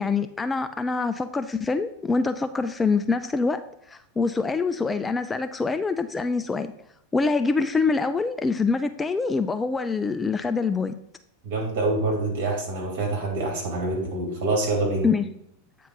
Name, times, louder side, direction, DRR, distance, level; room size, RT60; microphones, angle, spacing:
voice 1, 0.0-3.6 3.9-6.7 7.1-10.9 15.0-15.3, left 4 dB, 15° left, 10 dB, 0.3 m, -25 dB
voice 2, 11.4-15.1, right 2 dB, 50° right, -1 dB, 2.7 m, -26 dB
8.4 x 3.7 x 5.3 m, 0.77 s
figure-of-eight pair, 90°, 0 cm